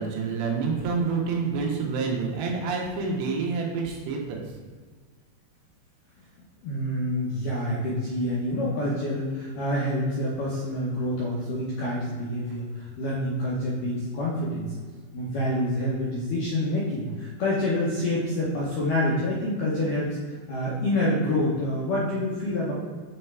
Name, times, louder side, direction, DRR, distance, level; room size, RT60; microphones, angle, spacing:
voice 1, 0.0-4.4, right 4 dB, 85° right, 0 dB, 3.1 m, -28 dB
voice 2, 6.6-14.7 15.1-20.2 20.5-22.7, left 1 dB, 75° left, -7 dB, 1.9 m, -27 dB
7.8 x 3.3 x 4.5 m, 1.5 s
omnidirectional pair, 4.9 m